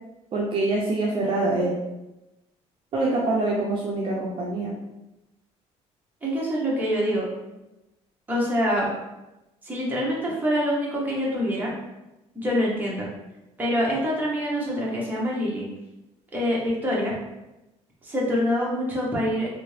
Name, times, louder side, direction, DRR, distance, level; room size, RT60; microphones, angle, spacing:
voice 1, 0.3-1.8 2.9-4.7, right 2 dB, 45° right, -3 dB, 0.5 m, -25 dB
voice 2, 6.2-7.3 8.3-8.9 9.6-11.7 12.3-13.1 13.6-15.7 16.3-17.1 18.0-19.6, equal, 15° right, -5 dB, 0.9 m, -25 dB
2.6 x 2.6 x 3.2 m, 0.98 s
cardioid pair, 130°, 13 cm